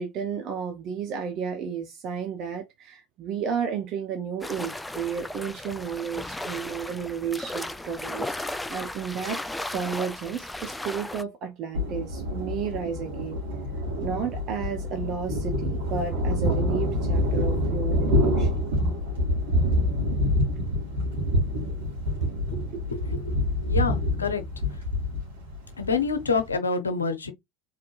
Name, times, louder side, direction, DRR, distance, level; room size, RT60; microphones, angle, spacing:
voice 1, 0.0-9.4 9.7-13.4 14.0-18.7 22.5-22.7, right 7 dB, 50° right, 1.0 m, -32 dB
sound 1, 4.4-11.2, left 1 dB, 5° left, 0.5 m, -35 dB
Thunder, 11.7-26.5, left 1 dB, 75° right, 2.8 m, -26 dB
voice 2, 22.9-24.4 25.8-27.3, left 5 dB, 90° left, 0.9 m, -27 dB
4.2 x 3.8 x 2.5 m
hypercardioid pair, 75°, 0 cm